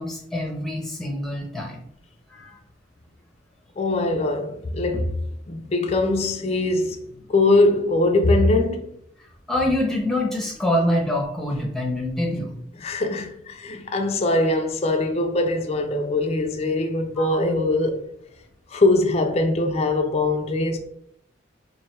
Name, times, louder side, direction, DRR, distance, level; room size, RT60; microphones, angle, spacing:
voice 1, 0.0-1.8 2.3-2.6 9.5-12.6 17.2-17.4, left 1 dB, ahead, 0.7 m, -25 dB
voice 2, 3.8-5.2 5.5-8.9 12.8-18.0 18.7-20.8, left 2 dB, 30° left, 0.4 m, -22 dB
3.1 x 2.6 x 4.4 m
head